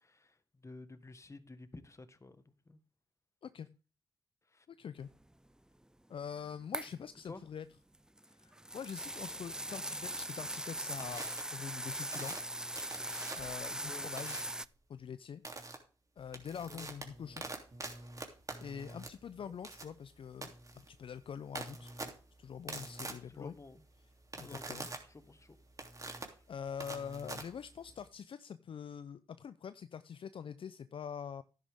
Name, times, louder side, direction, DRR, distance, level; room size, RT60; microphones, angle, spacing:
voice 1, 0.0-2.8 4.5-4.7 7.3-7.4 13.8-14.1 16.7-16.9 19.4-19.6 22.8-22.9 23.3-23.8 24.4-25.6, left 3 dB, 30° left, 12 dB, 1.5 m, -52 dB
voice 2, 4.7-5.1 6.1-7.7 8.4-12.3 13.4-14.4 14.9-15.4 16.2-17.4 18.6-21.9 22.4-23.5 24.3-24.9 26.5-31.4, left 7 dB, 55° left, 14 dB, 0.6 m, -44 dB
sound 1, 6.7-7.0 7.9-14.6, right 1 dB, 5° right, 0.5 m, -40 dB
sound 2, 11.0-11.4 12.1-13.6 14.2-14.6 15.4-15.7 16.2-28.1, right 2 dB, 30° right, 3.1 m, -45 dB
11.0 x 10.5 x 3.6 m, 0.36 s
supercardioid pair, 50°, 11 cm